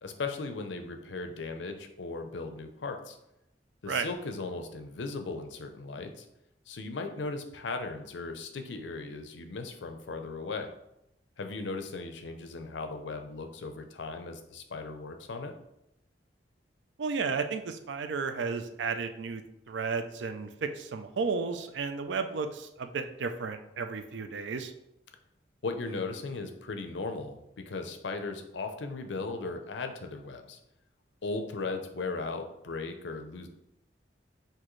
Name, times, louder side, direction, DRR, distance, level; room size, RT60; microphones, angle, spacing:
voice 1, 0.0-3.2 3.8-6.3 6.7-10.7 11.4-15.5 25.6-30.6 31.2-33.5, left 3 dB, 80° left, 6 dB, 0.6 m, -37 dB
voice 2, 17.0-19.4 19.7-24.7, right 5 dB, 75° right, 8 dB, 0.4 m, -33 dB
6.0 x 2.7 x 3.1 m, 0.85 s
head